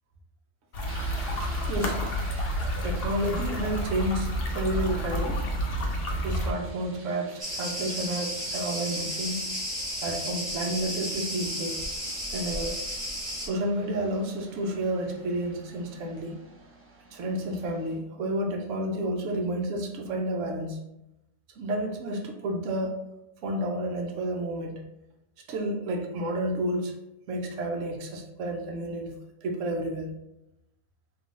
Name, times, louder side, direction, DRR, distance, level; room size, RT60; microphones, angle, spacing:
sound 1, 0.7-6.5, equal, 55° left, 0.8 m, -30 dB
sound 2, 0.8-18.0, right 2 dB, 15° right, 0.5 m, -50 dB
voice 1, 1.7-2.1 2.8-5.5 6.2-9.5 10.0-11.8 12.3-12.8 13.4-16.4 17.1-20.8 21.6-23.0 23.4-24.8 25.5-26.9 27.3-30.1, right 1 dB, 75° right, 2 dB, 1.0 m, -30 dB
Cricket, 7.4-13.5, equal, 40° right, 1.2 m, -33 dB
3.7 x 2.8 x 3.6 m, 0.87 s
omnidirectional pair, 1.4 m